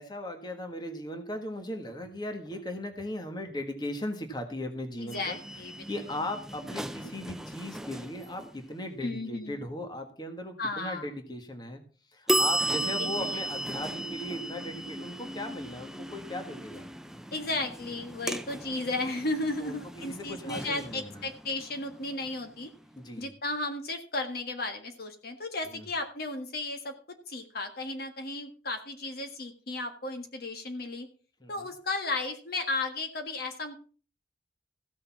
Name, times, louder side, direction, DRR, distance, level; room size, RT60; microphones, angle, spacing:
voice 1, 0.0-5.4 5.9-11.8 12.1-16.9 19.6-21.2 23.0-23.3 25.7-25.9 31.4-31.7, left 1 dB, 25° left, 5 dB, 1.5 m, -38 dB
voice 2, 5.0-5.9 9.0-9.7 10.6-11.1 13.0-13.4 17.3-22.7 23.2-31.1 31.5-33.8, left 2 dB, 55° left, 6 dB, 1.6 m, -34 dB
sound 1, 5.1-8.8 12.3-23.0, right 1 dB, 5° right, 0.5 m, -35 dB
15.0 x 6.7 x 5.8 m, 0.39 s
head